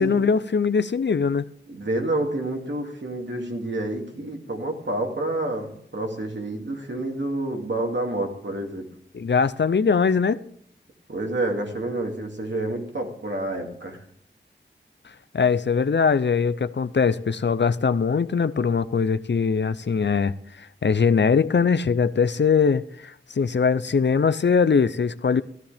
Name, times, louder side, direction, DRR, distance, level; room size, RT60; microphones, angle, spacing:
voice 1, 0.0-1.5 9.1-10.4 15.0-25.4, left 5 dB, 60° left, 0.5 m, -21 dB
voice 2, 1.7-8.9 11.1-14.0, right 2 dB, 65° right, 2.5 m, -28 dB
14.0 x 13.0 x 3.4 m
wide cardioid pair, 50°, 20 cm